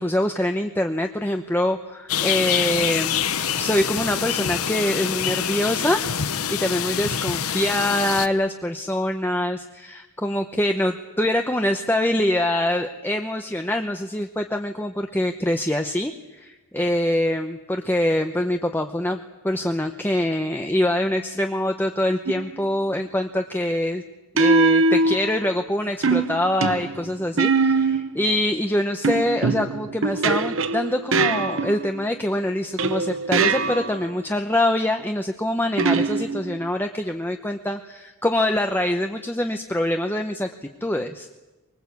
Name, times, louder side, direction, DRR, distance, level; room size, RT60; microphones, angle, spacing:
voice 1, 0.0-3.2 3.6-19.2 19.4-24.0 24.3-40.5 40.8-41.3, left 1 dB, 10° left, 5 dB, 0.8 m, -24 dB
sound 1, 2.1-8.3, left 8 dB, 80° left, 1.1 m, -25 dB
sound 2, 22.3-22.6 24.4-25.6 26.0-28.2 29.0-32.0 32.8-34.1 35.8-36.7, right 3 dB, 60° right, 1.0 m, -22 dB
24.5 x 22.0 x 8.4 m, 1.1 s
head